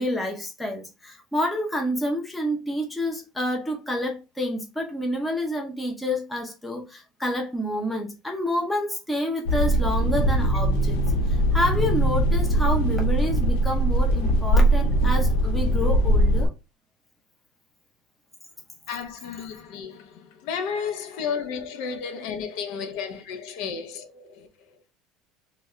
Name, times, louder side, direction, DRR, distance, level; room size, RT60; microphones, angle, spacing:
voice 1, 0.0-11.0 11.3-16.5, equal, 5° left, 0.7 m, -28 dB
sound 1, 9.5-16.5, right 1 dB, 85° left, 1.0 m, -21 dB
voice 2, 18.9-24.7, left 6 dB, 55° left, 0.7 m, -33 dB
4.0 x 2.3 x 3.1 m
cardioid pair, 170°, 0 cm